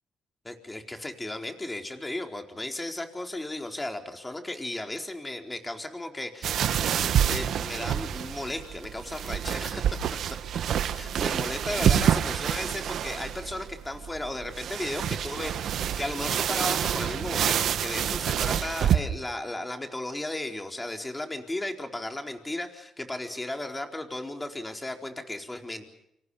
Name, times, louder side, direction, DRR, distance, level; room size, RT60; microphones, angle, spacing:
voice 1, 0.4-9.8 10.7-25.9, left 1 dB, 15° left, 4 dB, 4.4 m, -35 dB
sound 1, 6.4-19.0, right 9 dB, 70° right, 1.7 m, -27 dB
28.0 x 27.0 x 5.7 m, 0.78 s
cardioid pair, 90°, 0 cm